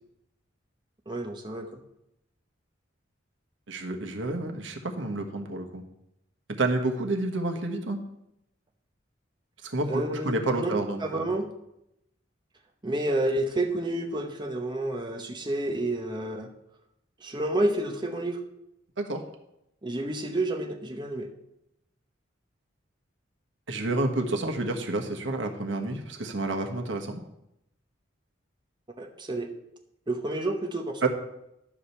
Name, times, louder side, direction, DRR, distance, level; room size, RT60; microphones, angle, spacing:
voice 1, 1.1-1.8 9.9-11.5 12.8-16.5 17.2-18.4 19.8-21.3 29.0-29.5 30.1-31.1, right 1 dB, 25° right, 2 dB, 0.9 m, -30 dB
voice 2, 3.7-5.8 6.6-8.0 9.6-11.3 19.0-19.2 23.7-27.2 31.0-31.1, right 2 dB, 70° right, 4 dB, 1.3 m, -29 dB
11.5 x 5.0 x 7.1 m, 0.82 s
head